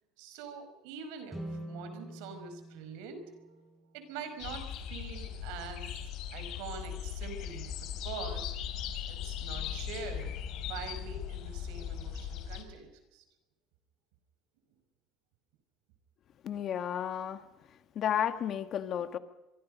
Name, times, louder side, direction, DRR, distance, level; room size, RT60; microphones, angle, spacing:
voice 1, 0.2-6.0 6.3-8.5 9.1-13.2, right 6 dB, 85° right, 8 dB, 5.3 m, -44 dB
sound 1, 1.3-4.5, right 1 dB, 10° right, 7.5 m, -46 dB
sound 2, 4.4-12.6, left 9 dB, 60° left, 4.1 m, -39 dB
voice 2, 16.4-17.5 18.0-19.2, left 9 dB, 45° left, 10 dB, 1.8 m, -32 dB
26.0 x 24.0 x 5.3 m, 1.0 s
cardioid pair, 130°, 0 cm